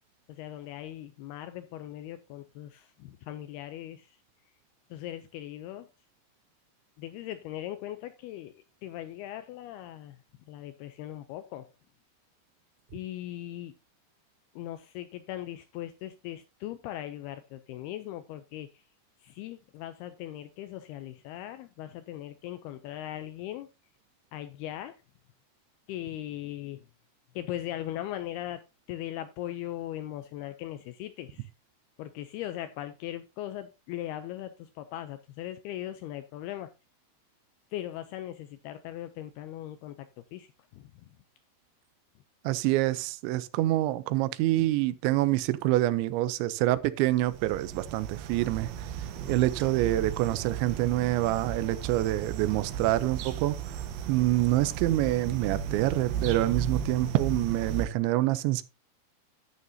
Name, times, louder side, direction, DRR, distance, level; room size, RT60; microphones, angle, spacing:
voice 1, 0.3-4.2 4.9-5.9 7.0-10.2 10.5-11.7 12.9-13.7 14.6-18.8 19.2-23.7 24.3-25.0 25.9-26.8 27.4-28.6 28.9-31.5 32.0-36.7 37.7-40.0 40.3-41.1 44.5-44.7, left 13 dB, 85° left, 2.3 m, -39 dB
voice 2, 42.5-48.7 49.3-53.6 54.1-58.6, right 16 dB, 90° right, 3.0 m, -26 dB
sound 1, 47.1-57.9, right 8 dB, 75° right, 2.7 m, -35 dB
11.0 x 9.4 x 2.7 m
omnidirectional pair, 5.1 m